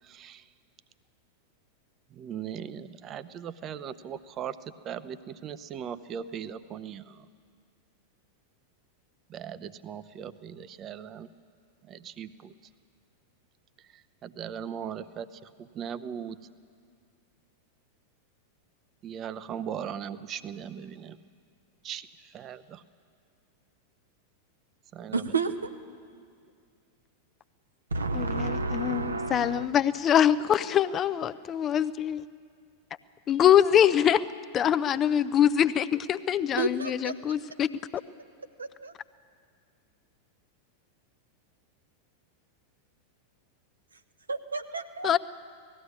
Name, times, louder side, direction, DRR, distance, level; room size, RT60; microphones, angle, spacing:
voice 1, 0.0-0.5 2.1-7.3 9.3-11.3 11.8-12.5 13.8-16.5 19.0-21.2 21.8-22.8 24.9-25.4, right 8 dB, 30° right, 13 dB, 0.7 m, -39 dB
voice 2, 25.1-25.7 27.9-29.7 36.6-37.1 38.6-38.9 44.3-45.2, right 3 dB, 75° right, 8 dB, 0.9 m, -31 dB
voice 3, 28.1-32.2 33.3-34.2 34.5-37.7 45.0-45.2, left 9 dB, 30° left, 15 dB, 0.5 m, -24 dB
18.5 x 14.5 x 9.8 m, 2.2 s
figure-of-eight pair, 90°, 0 cm